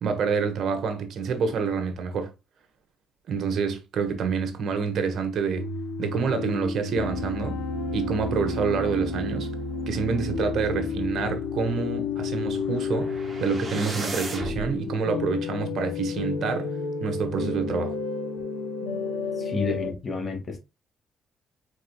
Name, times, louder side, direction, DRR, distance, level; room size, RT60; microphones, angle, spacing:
voice 1, 0.0-2.3 3.3-5.6 6.0-7.6 7.9-9.5 9.9-16.7 17.0-18.0, right 5 dB, 70° right, 1.2 m, -27 dB
sound 1, 5.5-19.9, left 4 dB, 85° left, 1.0 m, -31 dB
sound 2, 12.5-14.7, right 3 dB, 30° right, 2.1 m, -35 dB
voice 2, 19.4-20.6, left 3 dB, 35° left, 1.9 m, -30 dB
4.7 x 4.4 x 2.3 m
cardioid pair, 90°, 0 cm